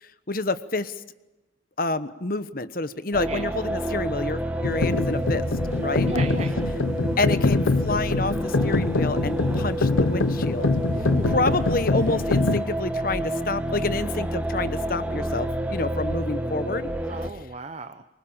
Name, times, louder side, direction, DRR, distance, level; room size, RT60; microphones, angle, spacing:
voice 1, 0.3-1.0 1.8-5.5 5.8-6.1 7.2-10.8 11.3-16.9, left 2 dB, 45° left, 13 dB, 1.2 m, -28 dB
sound 1, 3.1-17.3, right 1 dB, 10° right, 2.0 m, -29 dB
sound 2, 4.6-12.6, left 3 dB, 90° left, 0.9 m, -24 dB
voice 2, 6.0-6.7 10.8-11.6 17.1-18.0, right 3 dB, 35° right, 9 dB, 0.8 m, -36 dB
25.0 x 23.5 x 7.3 m, 1.1 s
head